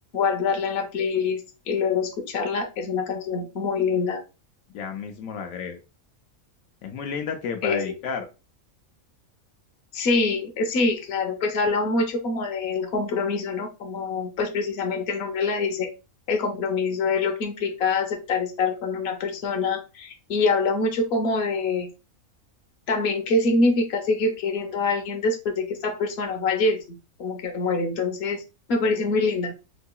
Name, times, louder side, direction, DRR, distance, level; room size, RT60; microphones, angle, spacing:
voice 1, 0.1-1.4 1.7-4.2 7.6-7.9 9.9-15.9 16.3-21.9 22.9-28.4 28.7-29.5, left 3 dB, 55° left, 4 dB, 0.9 m, -25 dB
voice 2, 4.7-5.8 6.8-8.3 28.9-29.0, left 6 dB, 80° left, 5 dB, 1.0 m, -32 dB
4.6 x 2.8 x 2.2 m, 0.29 s
omnidirectional pair, 1.4 m